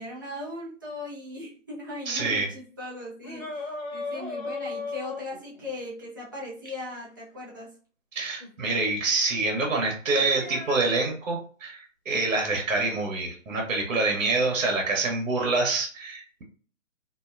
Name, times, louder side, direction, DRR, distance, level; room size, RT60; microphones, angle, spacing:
voice 1, 0.0-7.7, left 2 dB, 15° right, -5 dB, 0.4 m, -38 dB
voice 2, 2.1-2.5 8.1-16.4, right 3 dB, 70° right, 1 dB, 0.9 m, -26 dB
sound 1, 3.2-5.8 8.4-8.5 10.1-10.8, left 3 dB, 80° left, 1.1 m, -36 dB
2.5 x 2.2 x 2.3 m, 0.41 s
hypercardioid pair, 145°, 39 cm